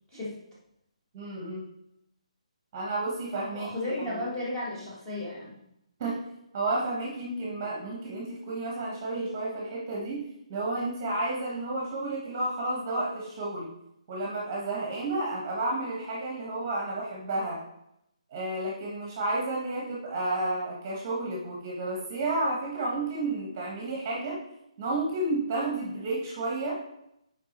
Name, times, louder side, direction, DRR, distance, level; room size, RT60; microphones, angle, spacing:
voice 1, 1.1-1.6 2.7-4.2 6.0-6.2 6.5-13.7 14.1-17.6 18.3-24.4 24.8-26.8, right 2 dB, 25° right, -2 dB, 1.2 m, -31 dB
voice 2, 3.5-5.6, left 1 dB, 10° left, -8 dB, 1.5 m, -34 dB
5.5 x 4.7 x 4.2 m, 0.81 s
hypercardioid pair, 170°, 4 cm